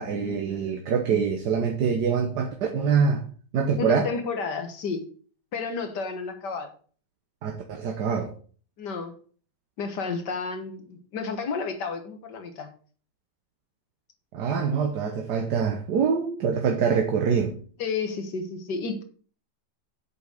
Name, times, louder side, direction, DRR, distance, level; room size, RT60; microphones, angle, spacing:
voice 1, 0.0-3.2 3.5-4.1 7.4-8.3 14.3-17.5, right 6 dB, 75° right, 1.7 m, -25 dB
voice 2, 3.8-5.0 5.5-6.7 8.8-9.1 9.8-12.7 17.8-19.0, left 4 dB, 80° left, 1.9 m, -31 dB
7.9 x 5.4 x 6.4 m
omnidirectional pair, 1.9 m